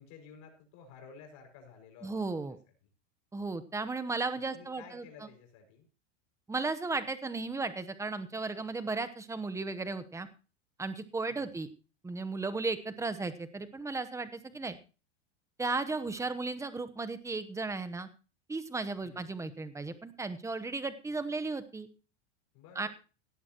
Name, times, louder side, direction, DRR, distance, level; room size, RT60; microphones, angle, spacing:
voice 1, 0.0-2.4 4.3-5.9 11.3-11.6 14.5-14.7 19.0-19.4 22.5-22.9, left 6 dB, 55° left, 3 dB, 5.9 m, -53 dB
voice 2, 2.0-2.6 3.3-5.0 6.5-10.3 10.8-11.7 12.0-14.8 15.6-18.1 18.5-21.9 22.8-22.9, right 3 dB, 10° right, 11 dB, 0.9 m, -35 dB
17.5 x 11.0 x 3.0 m, 0.34 s
supercardioid pair, 120°, 35 cm